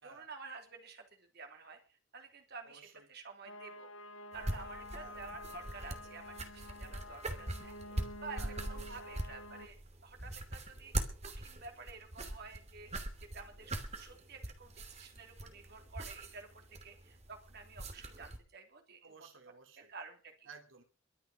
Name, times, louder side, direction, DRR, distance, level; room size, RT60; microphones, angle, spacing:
voice 1, 0.0-1.8 2.1-3.9 4.3-10.9 11.2-12.9 13.3-13.7 14.0-19.3 19.8-20.5, right 4 dB, 55° right, 4 dB, 3.4 m, -51 dB
voice 2, 2.6-3.1 5.0-5.2 8.3-9.0 19.0-19.9 20.5-20.8, right 5 dB, 80° right, 6 dB, 2.8 m, -55 dB
sound 1, 3.4-9.7, left 1 dB, 80° left, 1.9 m, -49 dB
sound 2, 4.3-18.4, right 1 dB, 35° right, 2.8 m, -42 dB
23.5 x 8.1 x 6.3 m, 0.36 s
head